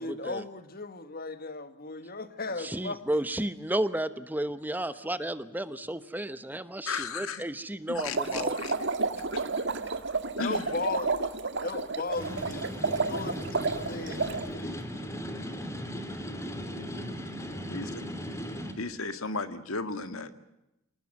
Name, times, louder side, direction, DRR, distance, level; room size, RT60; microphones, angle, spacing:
voice 1, 0.0-3.0 9.8-9.9 10.3-11.1 11.6-12.6 13.0-14.8, left 3 dB, 45° left, 11 dB, 1.7 m, -36 dB
voice 2, 2.6-8.6, right 1 dB, 10° right, 13 dB, 1.0 m, -32 dB
voice 3, 6.9-7.4 7.9-8.7 9.3-9.4 10.4-10.7 17.7-18.0 18.8-20.4, left 4 dB, 90° left, 10 dB, 1.9 m, -35 dB
sound 1, 8.0-14.5, right 4 dB, 60° right, 1.8 m, -31 dB
sound 2, 12.1-18.7, equal, 15° left, 2.8 m, -37 dB
27.0 x 19.5 x 7.6 m, 0.88 s
head